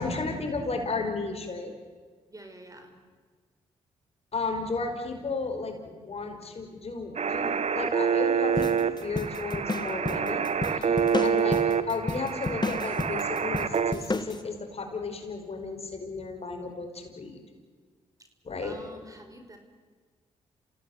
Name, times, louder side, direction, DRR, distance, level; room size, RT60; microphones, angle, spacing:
voice 1, 0.0-1.7 4.3-10.8 11.2-11.6 11.9-17.4 18.4-18.8, left 3 dB, 45° left, 4 dB, 5.2 m, -34 dB
voice 2, 2.3-2.9 10.7-11.2 18.6-19.6, right 1 dB, 25° right, 5 dB, 5.0 m, -47 dB
sound 1, 7.2-13.9, right 6 dB, 50° right, 1.4 m, -27 dB
sound 2, 8.6-14.4, left 2 dB, 30° left, 2.1 m, -32 dB
28.0 x 16.5 x 9.9 m, 1.5 s
hypercardioid pair, 45°, 14 cm